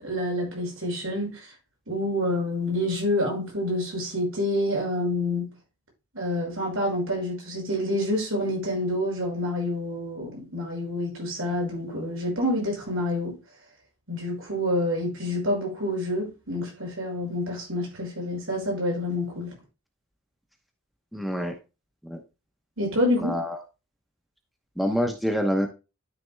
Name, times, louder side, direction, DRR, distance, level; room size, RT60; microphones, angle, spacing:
voice 1, 0.0-1.4 1.9-5.5 6.1-13.4 14.1-19.5 22.8-23.3, left 1 dB, 70° right, 5.9 m, -27 dB
voice 2, 21.1-21.5 22.0-22.2 23.2-23.6 24.8-25.7, equal, ahead, 1.0 m, -26 dB
12.5 x 6.8 x 2.3 m
head